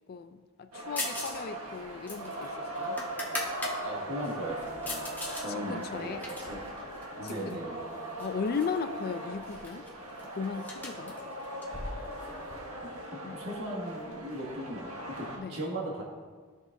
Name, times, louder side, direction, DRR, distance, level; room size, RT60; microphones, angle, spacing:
voice 1, 0.1-3.0 5.5-6.2 7.2-7.6 8.2-9.9 10.3-11.2 13.2-13.4 15.4-15.6, left 5 dB, 45° left, 10 dB, 0.3 m, -36 dB
sound 1, 0.7-15.4, right 1 dB, 80° right, 1.3 m, -39 dB
sound 2, 1.0-1.4 1.7-3.8 4.2-5.5 5.8-7.5 8.2-8.8 9.0-9.1 9.4-12.5, left 2 dB, 10° left, 0.9 m, -39 dB
voice 2, 3.8-5.0 5.4-6.2 6.5-6.6 7.2-7.9 12.8-12.9 13.3-16.0, right 1 dB, 60° right, -3 dB, 1.9 m, -37 dB
13.5 x 6.2 x 2.7 m, 1.5 s
head